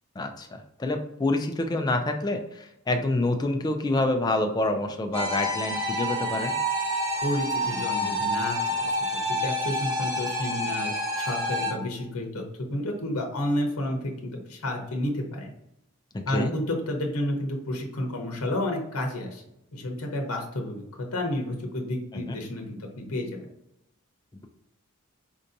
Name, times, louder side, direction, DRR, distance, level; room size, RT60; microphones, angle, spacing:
voice 1, 0.2-6.6 16.1-16.5 22.1-22.2, left 2 dB, 20° left, 4 dB, 0.3 m, -27 dB
sound 1, 5.1-11.7, equal, 15° right, 0.7 m, -28 dB
voice 2, 7.2-12.4 12.7-15.5 16.3-19.4 19.7-20.8 21.1-23.4, left 1 dB, 70° left, 2 dB, 0.8 m, -31 dB
4.5 x 2.6 x 2.6 m, 0.82 s
head